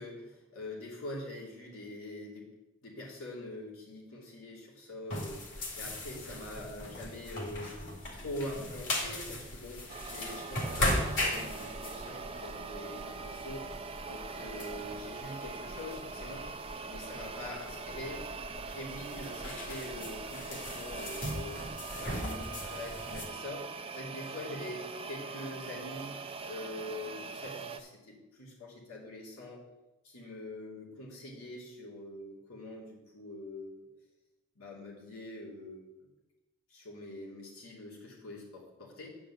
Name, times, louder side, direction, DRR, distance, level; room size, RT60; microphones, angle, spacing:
voice 1, 0.0-2.5 2.8-7.8 8.1-13.7 14.1-16.5 16.9-18.2 18.5-21.6 22.0-26.2 26.5-29.6 30.0-33.9 34.5-35.8 36.7-39.2, left 1 dB, 80° left, -3 dB, 2.9 m, -44 dB
sound 1, 5.1-23.3, left 1 dB, 60° left, 2.2 m, -39 dB
sound 2, 9.9-27.8, right 4 dB, 25° right, 0.5 m, -42 dB
9.3 x 5.1 x 7.0 m, 1.0 s
head